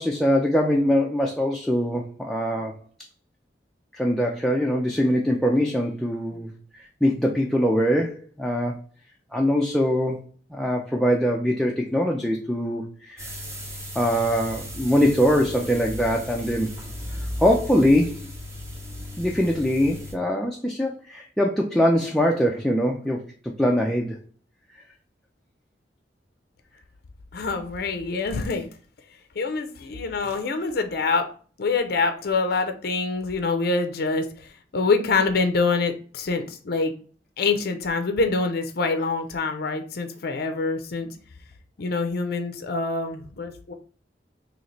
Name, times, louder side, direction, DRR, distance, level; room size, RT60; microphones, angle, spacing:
voice 1, 0.0-2.7 3.9-8.8 9.3-10.2 10.5-13.3 14.0-16.7 17.4-18.3 19.2-24.2, equal, ahead, -1 dB, 0.4 m, -23 dB
sound 1, 13.2-20.1, left 1 dB, 15° right, 0.8 m, -36 dB
voice 2, 27.3-28.7 29.4-31.3 31.6-36.9 37.4-41.1 41.8-43.7, left 4 dB, 60° left, 7 dB, 0.5 m, -25 dB
3.1 x 2.8 x 3.9 m, 0.42 s
head